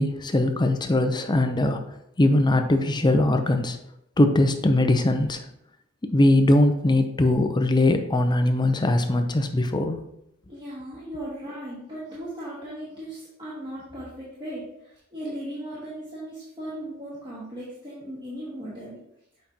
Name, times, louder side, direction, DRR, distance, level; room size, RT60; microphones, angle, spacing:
voice 1, 0.0-1.8 2.2-3.8 4.2-5.5 6.1-10.0, left 1 dB, 20° left, 6 dB, 0.6 m, -21 dB
voice 2, 10.5-19.0, right 1 dB, 20° right, -8 dB, 1.6 m, -37 dB
7.2 x 5.3 x 2.8 m, 0.79 s
head